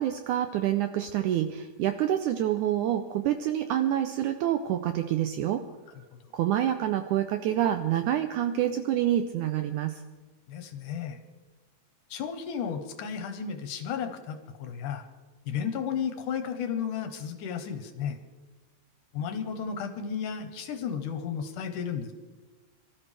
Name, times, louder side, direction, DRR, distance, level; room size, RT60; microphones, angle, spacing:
voice 1, 0.0-5.6 6.3-10.0, right 11 dB, 80° right, 8 dB, 1.8 m, -27 dB
voice 2, 10.5-11.2 12.1-15.1 15.5-18.2 19.1-22.1, left 7 dB, 70° left, 7 dB, 2.3 m, -33 dB
24.5 x 13.5 x 3.3 m, 1.3 s
omnidirectional pair, 4.1 m